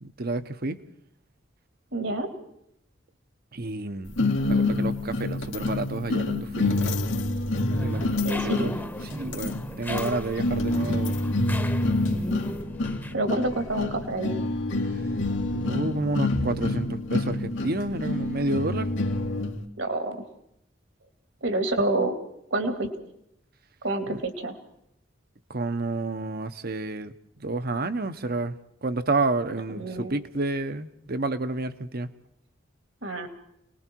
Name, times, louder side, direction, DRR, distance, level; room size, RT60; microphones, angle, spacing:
voice 1, 0.0-0.8 3.5-4.1 4.5-7.0 7.8-8.7 9.1-11.2 15.5-18.9 24.1-24.2 25.5-27.1 27.4-32.1, right 2 dB, 55° right, 11 dB, 1.1 m, -30 dB
voice 2, 1.9-2.3 8.2-8.7 13.1-14.4 19.8-20.2 21.4-22.2 22.5-22.9 23.8-24.6 29.7-30.2 33.0-33.3, right 2 dB, 70° right, 6 dB, 2.6 m, -28 dB
sound 1, 4.2-19.6, left 2 dB, 85° left, 2.2 m, -27 dB
sound 2, 7.7-13.1, left 1 dB, 10° left, 1.1 m, -37 dB
29.0 x 20.0 x 4.6 m, 0.77 s
head